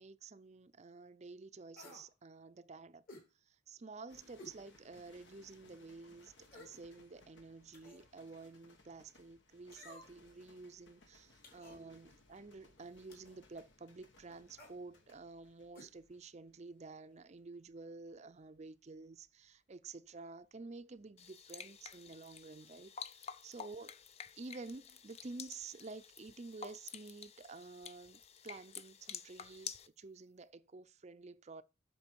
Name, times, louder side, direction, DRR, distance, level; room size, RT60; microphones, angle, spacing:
voice 1, 0.0-3.0 3.5-24.0 24.4-31.6, right 3 dB, 35° right, 0.5 m, -51 dB
sound 1, 1.7-2.1 3.1-3.3 4.4-4.6 5.1-5.2 6.4-6.8 7.7-8.1 9.7-10.3 11.4-11.8 13.1-13.4 14.5-14.8 15.7-15.9 16.2-16.3, left 1 dB, 50° left, 3.1 m, -55 dB
sound 2, 4.1-21.3 21.6-22.0, left 2 dB, 75° left, 1.5 m, -66 dB
sound 3, 21.2-29.9, left 7 dB, 35° left, 0.5 m, -50 dB
8.4 x 6.0 x 4.6 m
head